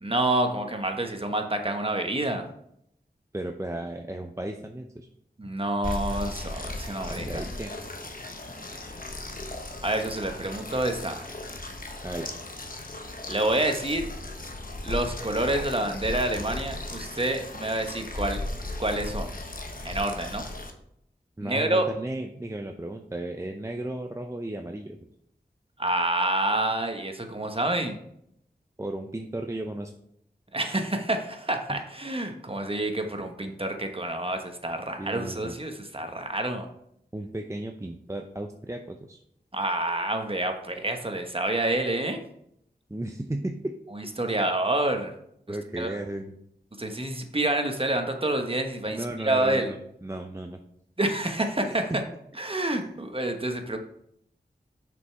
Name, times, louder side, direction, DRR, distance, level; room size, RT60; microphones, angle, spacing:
voice 1, 0.0-2.4 5.4-7.4 9.8-11.2 13.3-14.0 14.8-18.4 18.8-19.3 19.8-20.4 21.4-21.8 25.8-28.0 30.5-36.7 39.5-42.2 43.9-45.1 45.5-45.9 46.8-49.7 51.0-51.9 52.4-53.8, right 1 dB, 35° right, 5 dB, 1.2 m, -28 dB
voice 2, 3.3-5.1 7.1-7.7 12.0-12.3 21.4-25.0 28.8-29.9 31.7-31.8 35.0-35.6 37.1-39.2 42.9-43.7 44.2-44.4 45.5-46.3 48.8-50.6 51.6-52.0 52.7-52.9, right 1 dB, 15° right, 4 dB, 0.6 m, -35 dB
sound 1, 5.8-20.7, left 2 dB, 55° left, 1.0 m, -36 dB
6.5 x 5.3 x 4.5 m, 0.74 s
wide cardioid pair, 40°, 17 cm